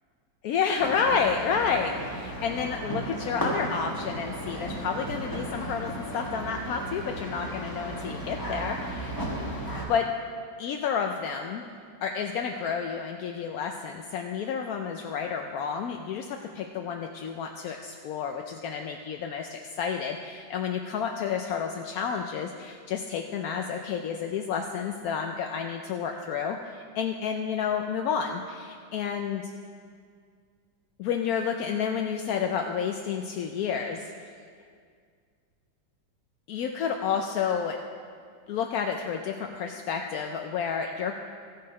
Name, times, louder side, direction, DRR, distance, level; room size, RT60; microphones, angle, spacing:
voice 1, 0.4-9.5 9.9-10.1 10.6-11.6 12.0-29.5 31.0-34.3 36.5-37.8 38.5-41.2, left 6 dB, 70° left, 4 dB, 0.8 m, -30 dB
sound 1, 0.8-9.9, right 1 dB, 15° left, 1.0 m, -35 dB
14.0 x 6.5 x 5.2 m, 2.1 s
omnidirectional pair, 2.0 m